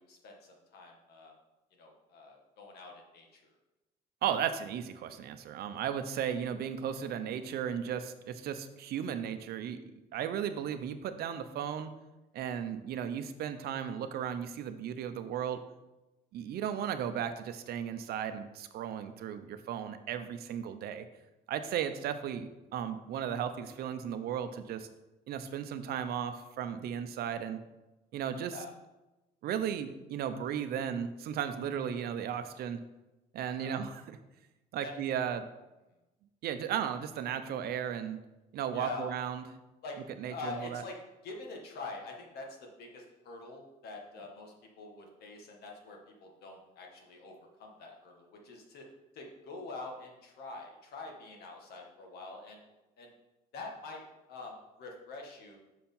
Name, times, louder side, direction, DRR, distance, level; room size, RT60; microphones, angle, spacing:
voice 1, 0.0-1.3 1.8-3.4 21.6-21.8 28.5-28.7 33.6-33.8 34.8-35.0 38.7-39.1 39.8-40.0 40.3-41.0 41.2-48.9 49.1-52.6 53.0-53.1 53.5-54.0 54.3-55.6, left 3 dB, 70° left, 1 dB, 1.7 m, -45 dB
voice 2, 4.2-9.8 10.1-11.9 12.3-15.6 16.3-21.0 21.5-24.9 25.3-27.6 28.1-28.5 29.4-32.8 33.3-34.2 34.7-35.5 36.4-38.2 38.5-39.4 40.2-40.8, right 8 dB, 65° right, 9 dB, 0.7 m, -35 dB
6.3 x 4.4 x 5.5 m, 1.0 s
cardioid pair, 110°, 17 cm